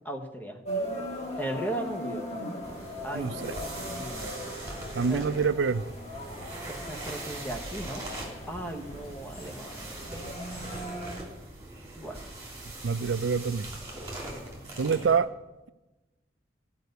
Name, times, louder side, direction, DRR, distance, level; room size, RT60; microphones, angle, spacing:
voice 1, 0.0-0.6 1.4-2.4 3.0-4.4 5.0-5.2 6.7-8.1 8.4-10.1 12.0-12.2 15.0-15.1, right 1 dB, 10° left, 2 dB, 1.1 m, -37 dB
sound 1, 0.7-11.1, equal, 35° left, 1.9 m, -39 dB
sound 2, 2.6-15.2, right 1 dB, 15° right, 2.9 m, -41 dB
voice 2, 3.1-3.5 4.9-5.8 12.8-13.7 14.8-15.3, right 5 dB, 80° right, 14 dB, 0.4 m, -26 dB
14.5 x 5.4 x 8.0 m, 1.1 s
head